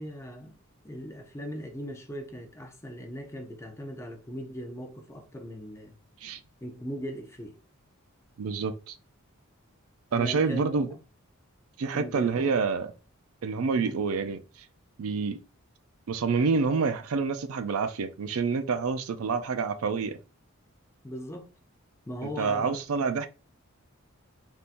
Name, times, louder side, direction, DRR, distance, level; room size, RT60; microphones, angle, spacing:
voice 1, 0.0-5.9 6.6-7.6 10.2-11.0 11.9-12.5 13.8-14.0 21.0-21.5 22.1-22.8, equal, 15° left, 0.5 m, -39 dB
voice 2, 8.4-9.0 10.1-10.9 11.8-12.9 13.4-14.4 15.0-15.4 16.1-20.2 22.2-23.3, right 5 dB, 75° right, 0.4 m, -27 dB
3.5 x 2.7 x 2.5 m
head